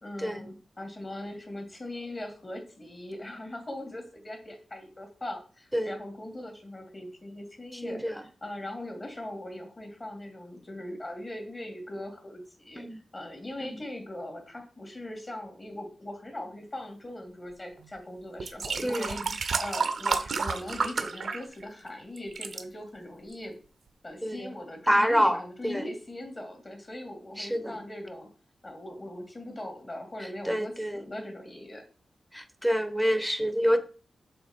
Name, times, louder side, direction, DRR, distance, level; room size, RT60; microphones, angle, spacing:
voice 1, 0.0-23.5 24.0-28.3 28.6-31.8, left 1 dB, 30° left, 3 dB, 2.3 m, -40 dB
voice 2, 7.8-8.2 12.8-13.0 13.6-13.8 18.8-19.3 24.2-24.5 24.9-25.4 25.6-25.8 27.4-27.8 30.2-31.0 32.3-33.8, equal, ahead, 9 dB, 0.9 m, -27 dB
sound 1, 17.8-17.9 18.4-21.9 22.2-22.6 23.3-23.4, right 5 dB, 65° right, 0.7 m, -31 dB
6.9 x 3.8 x 4.4 m, 0.38 s
wide cardioid pair, 90°, 0 cm